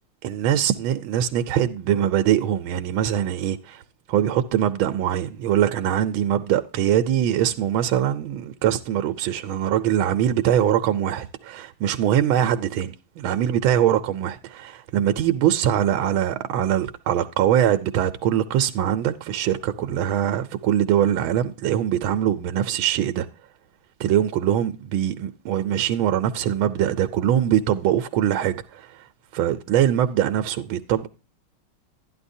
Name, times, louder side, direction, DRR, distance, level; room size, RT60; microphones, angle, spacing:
voice 1, 0.2-3.8 4.1-23.3 24.0-29.0 29.3-31.1, right 10 dB, 75° right, 1.4 m, -22 dB
12.0 x 10.0 x 2.6 m
omnidirectional pair, 2.3 m